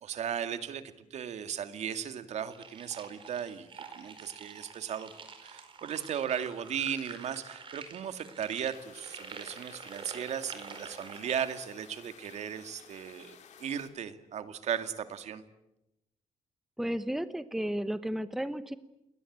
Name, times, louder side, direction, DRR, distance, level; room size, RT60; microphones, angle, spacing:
voice 1, 0.0-5.1 5.4-15.4, right 8 dB, 65° right, 9 dB, 2.2 m, -36 dB
sound 1, 2.5-11.6, right 5 dB, 40° right, 4.6 m, -47 dB
sound 2, 8.7-13.9, left 8 dB, 70° left, 4.2 m, -54 dB
voice 2, 16.8-18.8, equal, ahead, 12 dB, 0.9 m, -33 dB
29.0 x 22.0 x 8.8 m, 0.90 s
cardioid pair, 160°, 13 cm